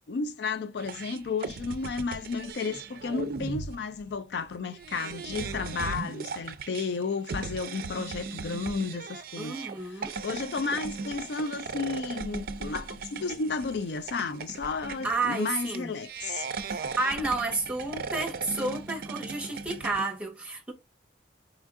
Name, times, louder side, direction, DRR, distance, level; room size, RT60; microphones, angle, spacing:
voice 1, 0.1-16.5, left 4 dB, 60° left, 0.4 m, -33 dB
sound 1, 0.8-20.1, right 4 dB, 50° right, 0.4 m, -38 dB
voice 2, 9.4-10.1 15.0-15.9 16.7-20.7, right 3 dB, 5° right, 1.1 m, -31 dB
4.4 x 3.6 x 2.4 m
head